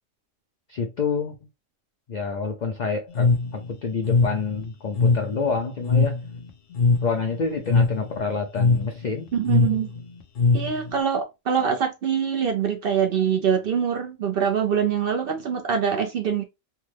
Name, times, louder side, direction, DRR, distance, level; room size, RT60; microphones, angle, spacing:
voice 1, 0.7-1.4 2.1-6.2 7.0-9.3, left 4 dB, 75° left, 0.4 m, -28 dB
sound 1, 3.1-11.0, left 4 dB, 55° left, 0.8 m, -22 dB
voice 2, 9.3-9.9 10.5-16.4, right 7 dB, 60° right, 0.6 m, -24 dB
3.4 x 2.1 x 3.1 m
omnidirectional pair, 1.4 m